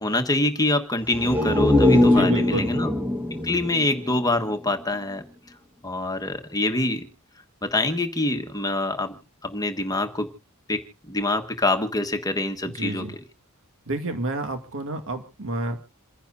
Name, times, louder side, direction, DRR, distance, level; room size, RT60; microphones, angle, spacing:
voice 1, 0.0-2.9 3.4-5.2 5.8-7.1 7.6-9.2 9.4-10.3 10.7-13.1, left 2 dB, 15° left, 7 dB, 1.4 m, -25 dB
sound 1, 1.1-4.8 5.2-5.3, left 1 dB, 10° right, 1.3 m, -22 dB
voice 2, 2.1-2.7 12.6-13.1 13.9-15.8, right 1 dB, 65° right, 6 dB, 2.1 m, -29 dB
28.0 x 10.5 x 2.6 m, 0.32 s
head